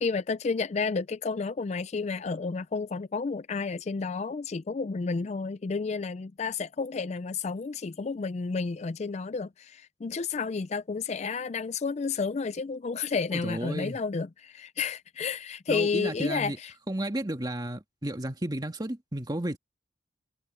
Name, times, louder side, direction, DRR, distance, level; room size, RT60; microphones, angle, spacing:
voice 1, 0.0-16.7, left 4 dB, 35° left, 0.4 m, -31 dB
voice 2, 13.3-14.0 15.7-16.6 16.9-19.6, right 1 dB, 20° right, 1.8 m, -33 dB
head